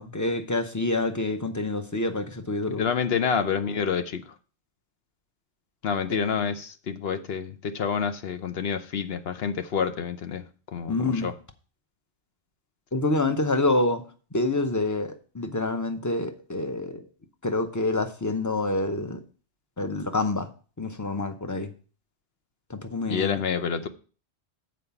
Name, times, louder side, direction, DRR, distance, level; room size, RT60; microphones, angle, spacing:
voice 1, 0.0-2.9 6.1-6.2 10.9-11.3 12.9-14.0 14.3-17.0 17.4-19.2 19.8-20.5 20.8-21.7 22.7-23.4, left 2 dB, 20° left, 7 dB, 0.7 m, -27 dB
voice 2, 2.8-4.2 5.8-10.4 10.7-11.3 23.1-23.9, left 6 dB, 60° left, 9 dB, 1.0 m, -28 dB
7.4 x 4.7 x 6.9 m, 0.38 s
omnidirectional pair, 1.2 m